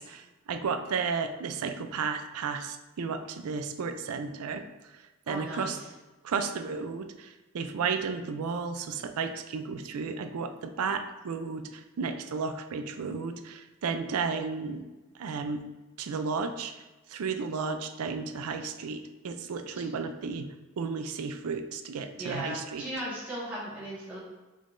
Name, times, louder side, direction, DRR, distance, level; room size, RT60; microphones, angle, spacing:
voice 1, 0.0-5.8 6.2-14.8 15.1-15.6 16.0-20.5 20.8-22.9, right 5 dB, 80° right, 8 dB, 0.4 m, -33 dB
voice 2, 5.3-5.9 19.7-19.8 22.2-24.2, right 1 dB, 5° right, -10 dB, 1.4 m, -37 dB
5.1 x 3.6 x 2.5 m, 1.1 s
head